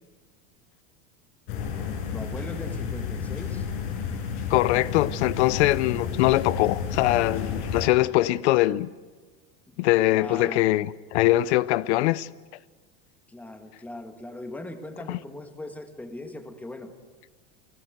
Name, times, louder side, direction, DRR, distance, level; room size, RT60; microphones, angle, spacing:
sound 1, 1.5-7.9, left 6 dB, 60° left, 6.5 m, -31 dB
voice 1, 2.1-3.7 9.7-9.8 10.1-10.6 13.3-16.9, left 1 dB, 5° left, 1.5 m, -39 dB
voice 2, 4.5-8.9 9.8-12.3 15.1-15.2, left 16 dB, 80° left, 0.7 m, -22 dB
29.5 x 16.5 x 8.0 m
supercardioid pair, 160°, 33 cm